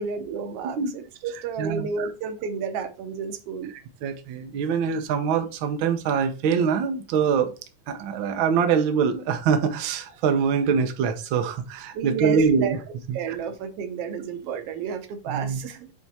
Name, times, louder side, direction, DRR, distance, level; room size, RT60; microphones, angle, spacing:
voice 1, 0.0-3.7 11.9-12.8 13.1-15.9, right 6 dB, 70° right, 1.6 m, -31 dB
voice 2, 1.6-2.1 4.0-7.5 7.9-12.8 13.1-13.2 15.3-15.6, right 6 dB, 85° right, 1.1 m, -24 dB
7.6 x 3.4 x 4.1 m
omnidirectional pair, 3.4 m